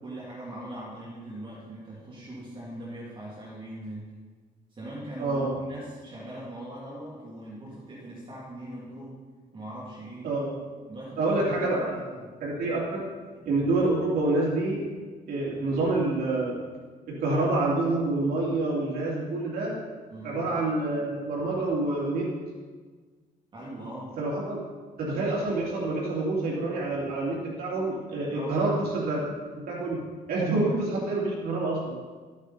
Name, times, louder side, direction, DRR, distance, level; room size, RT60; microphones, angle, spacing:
voice 1, 0.0-4.1 4.7-9.2 9.5-10.3 10.9-12.3 20.1-20.4 23.5-24.2 28.3-28.8 30.5-31.0, right 1 dB, 35° right, -6 dB, 2.7 m, -41 dB
voice 2, 11.2-11.9 12.4-13.0 13.4-14.8 15.3-16.6 17.1-19.7 20.2-22.3 24.2-24.6 25.0-29.2 29.7-30.0 30.3-31.9, right 2 dB, 75° right, -5 dB, 2.8 m, -27 dB
14.0 x 8.4 x 4.2 m, 1.4 s
cardioid pair, 140°, 16 cm